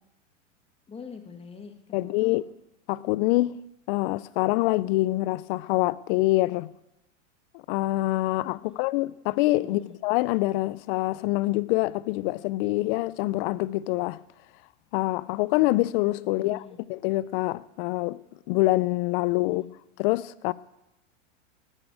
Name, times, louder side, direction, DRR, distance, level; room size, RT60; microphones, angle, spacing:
voice 1, 0.9-2.4 8.6-8.8 9.6-9.9 16.4-16.8 19.4-19.7, left 5 dB, 15° left, 1.6 m, -45 dB
voice 2, 1.9-2.4 2.9-3.6 3.9-6.7 7.7-14.2 14.9-16.6 16.9-18.2 18.5-19.6 20.0-20.5, left 19 dB, 45° left, 0.5 m, -25 dB
10.5 x 9.8 x 8.6 m
hypercardioid pair, 115°, 38 cm